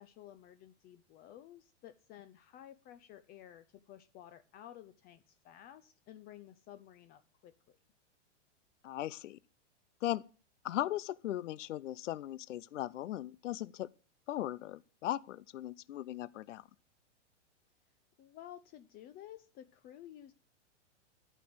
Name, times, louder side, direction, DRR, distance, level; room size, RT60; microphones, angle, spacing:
voice 1, 0.0-7.8 18.2-20.3, left 12 dB, 25° left, 0.6 m, -53 dB
voice 2, 8.8-9.4 10.0-10.2 10.6-13.9 14.3-16.6, left 13 dB, 80° left, 0.7 m, -38 dB
11.5 x 9.1 x 7.8 m
hypercardioid pair, 140°, 36 cm